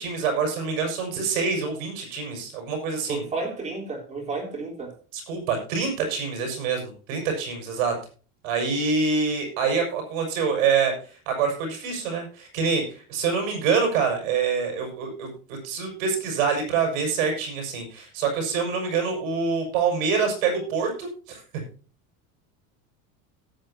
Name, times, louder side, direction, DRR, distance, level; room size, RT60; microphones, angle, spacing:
voice 1, 0.0-3.2 5.1-7.9 8.4-10.9 11.3-21.4, right 5 dB, 75° right, 5.8 m, -26 dB
voice 2, 3.1-4.9, right 3 dB, 15° right, 3.8 m, -31 dB
18.0 x 8.4 x 2.8 m
cardioid pair, 175°, 41 cm